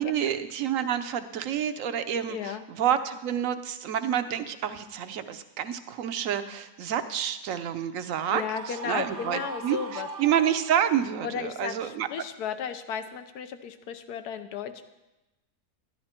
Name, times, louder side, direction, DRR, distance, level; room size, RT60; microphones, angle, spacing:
voice 1, 0.0-8.4 8.8-12.1, right 9 dB, 65° right, 11 dB, 1.0 m, -28 dB
voice 2, 2.3-2.6 8.3-10.1 11.2-14.8, left 8 dB, 80° left, 10 dB, 1.3 m, -34 dB
Screaming, 8.4-11.1, right 4 dB, 85° right, 1.9 m, -40 dB
12.0 x 11.5 x 4.4 m, 1.0 s
omnidirectional pair, 1.7 m